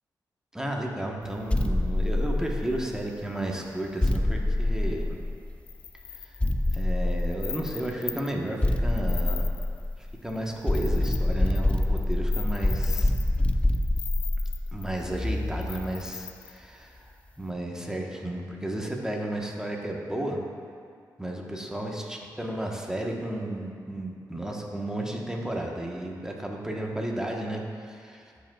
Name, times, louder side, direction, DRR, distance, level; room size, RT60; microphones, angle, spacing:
voice 1, 0.5-5.2 6.2-6.3 6.7-9.5 10.2-13.1 14.7-17.1 17.4-20.4 21.2-28.2, right 1 dB, 10° right, -1 dB, 1.1 m, -33 dB
sound 1, 1.5-3.0 4.0-5.6 6.4-7.8 8.6-10.2 10.7-15.9, left 1 dB, 15° left, 0.4 m, -26 dB
sound 2, 5.7-8.5 8.9-9.9 10.3-10.4 10.7-15.0 15.6-16.6, left 9 dB, 80° left, 0.3 m, -39 dB
12.5 x 5.1 x 2.3 m, 2.2 s
cardioid pair, 55°, 8 cm